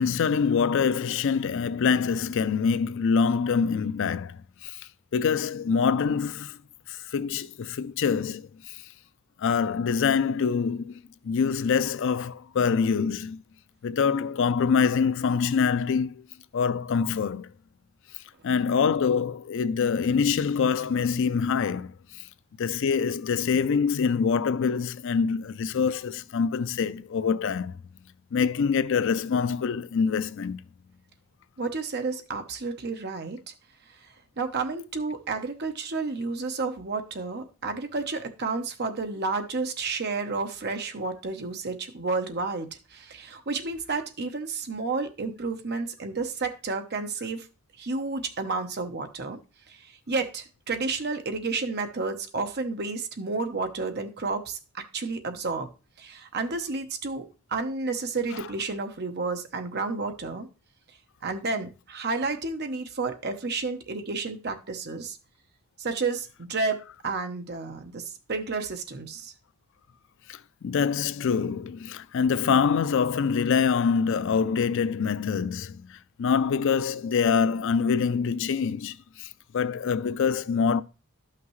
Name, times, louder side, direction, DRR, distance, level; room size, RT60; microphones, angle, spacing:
voice 1, 0.0-6.6 6.9-8.8 9.4-13.4 13.8-16.2 16.5-17.5 18.4-22.2 22.6-27.8 28.3-30.6 70.3-80.8, left 6 dB, 60° left, 0.4 m, -25 dB
voice 2, 31.6-33.5 34.0-47.5 47.8-49.4 49.7-55.7 56.0-60.5 61.2-65.2 65.8-69.3, right 4 dB, 50° right, 0.9 m, -31 dB
11.5 x 5.8 x 3.1 m
head